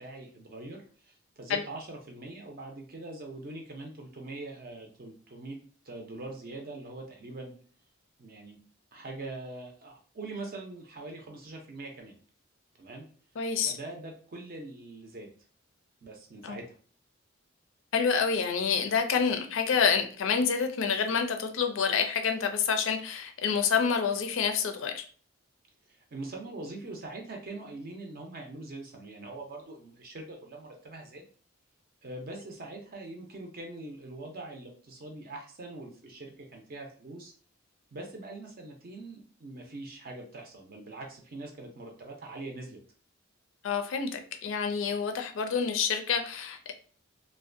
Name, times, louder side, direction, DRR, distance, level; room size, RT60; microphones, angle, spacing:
voice 1, 0.0-5.6 5.8-7.5 8.2-8.6 8.9-12.1 12.8-13.1 13.7-15.3 16.0-16.6 25.9-31.3 32.0-37.3 37.9-42.8, right 2 dB, 45° right, 2 dB, 0.5 m, -43 dB
voice 2, 13.4-13.8 16.4-16.6 17.9-25.0 43.6-46.7, left 6 dB, 70° left, 6 dB, 0.4 m, -28 dB
2.5 x 2.1 x 2.5 m, 0.43 s
head